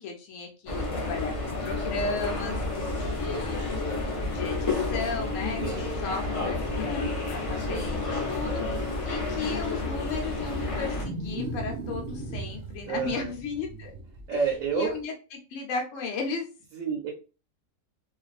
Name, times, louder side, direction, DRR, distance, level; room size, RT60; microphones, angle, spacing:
voice 1, 0.0-1.3 1.6-2.9 3.2-3.7 4.2-13.9 14.3-14.4 14.7-15.1 15.5-16.5, left 4 dB, 70° left, 2 dB, 0.9 m, -35 dB
sound 1, 0.7-11.0, left 3 dB, 40° left, 0.5 m, -30 dB
voice 2, 5.6-5.9 12.8-13.3 14.3-15.0 16.7-17.1, right 6 dB, 75° right, 0 dB, 1.0 m, -29 dB
Wild animals, 9.9-15.0, right 2 dB, 55° right, 0.7 m, -38 dB
2.5 x 2.3 x 2.3 m, 0.33 s
omnidirectional pair, 1.4 m